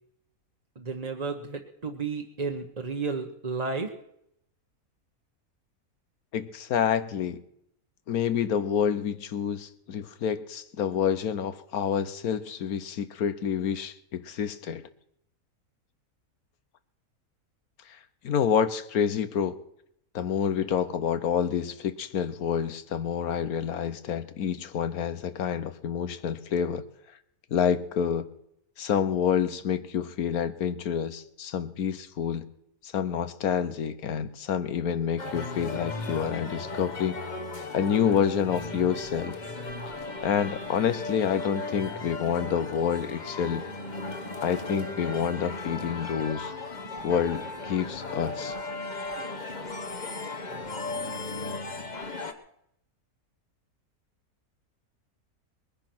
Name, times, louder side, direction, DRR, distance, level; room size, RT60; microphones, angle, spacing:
voice 1, 0.8-3.9, right 4 dB, 30° right, 1.2 m, -32 dB
voice 2, 6.3-7.4 8.1-14.8 18.2-19.6 20.1-26.8 27.5-28.3 28.8-32.5 32.8-37.2 37.7-39.4 40.2-43.7 44.4-46.5 47.0-48.6, left 8 dB, 75° left, 1.4 m, -28 dB
sound 1, 35.2-52.3, left 3 dB, 30° left, 1.2 m, -36 dB
21.5 x 9.8 x 6.1 m
omnidirectional pair, 1.6 m